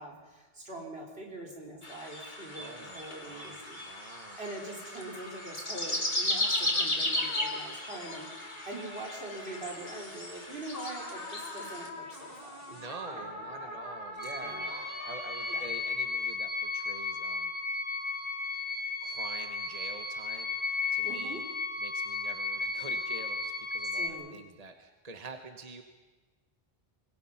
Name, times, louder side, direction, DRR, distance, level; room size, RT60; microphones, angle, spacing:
voice 1, 0.0-3.8 4.4-12.8 13.0-14.0 14.4-14.8 15.5-15.6 21.0-21.4 23.9-24.4, right 2 dB, 80° right, -1 dB, 4.4 m, -43 dB
sound 1, 1.8-11.9, left 1 dB, 50° left, 2.9 m, -35 dB
voice 2, 2.6-4.4 12.7-17.5 19.0-21.4 21.8-25.8, right 3 dB, 40° right, 6 dB, 1.3 m, -47 dB
sound 2, 6.5-6.9 7.2-10.0 10.7-15.7, left 1 dB, 70° left, 3.2 m, -44 dB
sound 3, 14.2-24.1, left 3 dB, 10° left, 1.3 m, -34 dB
25.0 x 20.5 x 5.8 m, 1.3 s
omnidirectional pair, 1.0 m